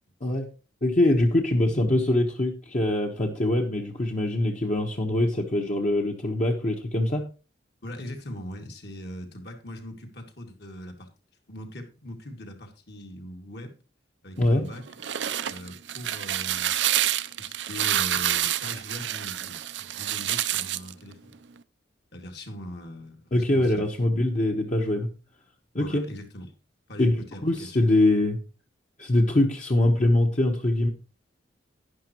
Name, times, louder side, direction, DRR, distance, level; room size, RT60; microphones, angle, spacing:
voice 1, 0.8-7.3 14.4-14.6 23.3-25.1 25.7-26.0 27.0-28.4 29.0-30.9, left 1 dB, 45° left, 1 dB, 1.1 m, -23 dB
voice 2, 7.8-11.1 11.5-13.7 14.2-14.9 15.5-16.7 17.4-21.4 22.1-23.9 24.1-24.2 25.8-26.5 26.9-27.8, left 1 dB, 65° left, 3 dB, 2.3 m, -41 dB
sound 1, 14.8-20.9, right 12 dB, 75° right, 0.5 m, -28 dB
11.5 x 10.5 x 3.0 m, 0.32 s
head